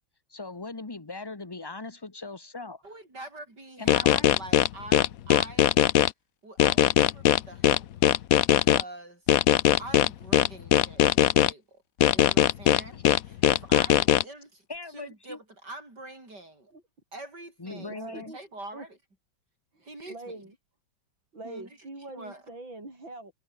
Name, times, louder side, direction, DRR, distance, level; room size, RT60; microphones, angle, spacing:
voice 1, 0.3-2.8 3.8-4.4 12.7-12.8 14.7-15.4 17.6-18.3, left 3 dB, 15° left, 1.1 m, -39 dB
voice 2, 2.8-5.9 6.4-7.9 8.4-9.2 9.5-11.8 12.1-14.7 14.9-16.7 17.1-19.0 19.8-20.4 21.4-21.7 22.1-22.4, right 2 dB, 55° right, 7.5 m, -45 dB
sound 1, 3.9-6.1 6.6-8.8 9.3-11.5 12.0-14.2, left 12 dB, 65° left, 0.9 m, -20 dB
voice 3, 17.7-18.4 18.7-18.8 19.7-20.5 21.3-23.3, right 2 dB, 75° right, 8.4 m, -43 dB
omnidirectional pair, 2.1 m